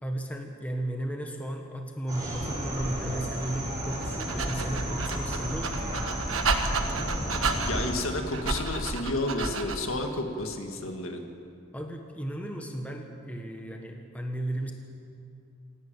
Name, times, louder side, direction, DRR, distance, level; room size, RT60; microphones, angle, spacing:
voice 1, 0.0-6.2 11.7-14.7, right 1 dB, 5° left, 2 dB, 1.4 m, -35 dB
sound 1, 2.1-7.9, equal, 20° right, 5.1 m, -33 dB
Dog, 3.9-10.0, right 3 dB, 65° right, 1.4 m, -31 dB
voice 2, 7.6-11.2, left 2 dB, 70° left, 4 dB, 2.0 m, -31 dB
27.5 x 11.0 x 8.9 m, 2.5 s
head